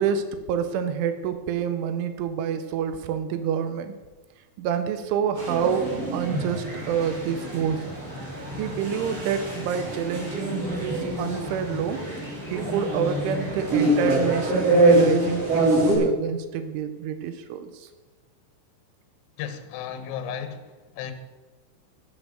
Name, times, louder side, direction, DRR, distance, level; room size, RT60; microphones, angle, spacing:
voice 1, 0.0-4.0 4.6-7.8 8.6-12.0 12.5-17.9, right 7 dB, 85° right, 9 dB, 3.3 m, -27 dB
sound 1, 5.4-15.9, right 1 dB, 35° right, 4.6 m, -25 dB
voice 2, 19.4-21.1, left 8 dB, 75° left, 9 dB, 3.0 m, -34 dB
12.5 x 8.6 x 6.5 m, 1.2 s
omnidirectional pair, 5.4 m